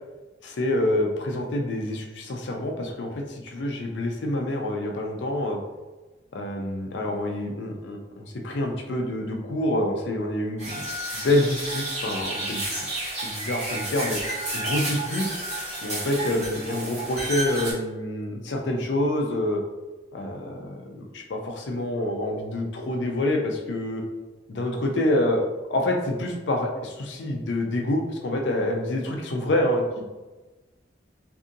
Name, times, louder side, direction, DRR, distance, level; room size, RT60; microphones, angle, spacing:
voice 1, 0.4-5.6 6.3-10.9 11.1-12.7 13.2-14.2 14.5-15.3 15.8-19.6 20.1-24.0 24.5-29.8, left 1 dB, 85° left, 2 dB, 0.5 m, -27 dB
sound 1, 10.6-17.7, right 1 dB, 40° right, 1.0 m, -31 dB
2.6 x 2.5 x 2.6 m, 1.2 s
head